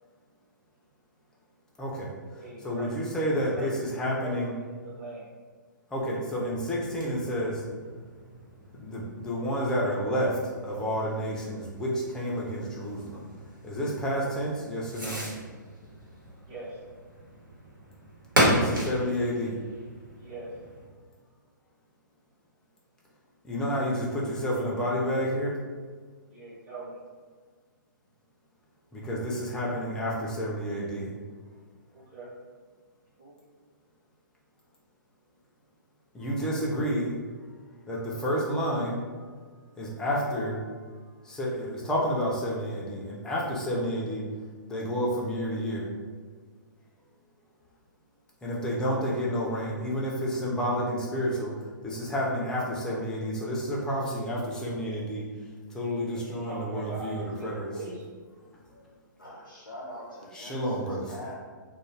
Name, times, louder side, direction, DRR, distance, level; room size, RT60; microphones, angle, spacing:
voice 1, 1.8-2.1 2.6-4.5 5.9-7.6 8.8-13.3 13.6-15.2 18.3-19.6 23.4-25.6 28.9-31.1 36.1-37.2 37.9-39.0 39.8-40.7 41.2-44.2 44.7-45.9 48.4-51.5 51.8-55.2 55.7-57.7 58.7-58.8 60.3-61.1, equal, 5° left, -4 dB, 0.4 m, -30 dB
voice 2, 2.4-2.9 3.3-3.7 4.0-5.3 16.4-16.8 20.2-20.5 26.3-26.9 31.9-32.3 33.2-33.3 56.1-57.1 57.4-58.2, right 2 dB, 30° right, -8 dB, 0.9 m, -42 dB
Fireworks, 6.3-20.9, equal, 85° right, 1.1 m, -35 dB
voice 3, 59.2-61.3, left 1 dB, 85° left, -6 dB, 0.7 m, -43 dB
2.3 x 2.2 x 3.1 m, 1.5 s
figure-of-eight pair, 120°, 11 cm